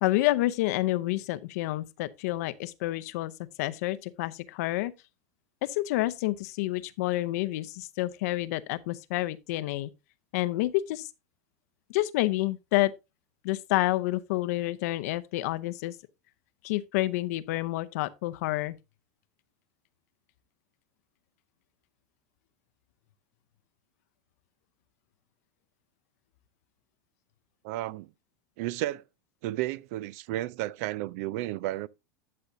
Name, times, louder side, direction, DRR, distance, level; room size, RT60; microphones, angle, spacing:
voice 1, 0.0-3.3 3.6-4.9 5.6-9.9 10.3-11.1 11.9-12.9 13.4-16.0 16.6-18.8, left 17 dB, 70° left, 0.6 m, -29 dB
voice 2, 27.6-28.1 28.6-29.0 29.4-31.9, right 15 dB, 60° right, 0.4 m, -32 dB
12.0 x 6.8 x 2.6 m
hypercardioid pair, 110°, 9 cm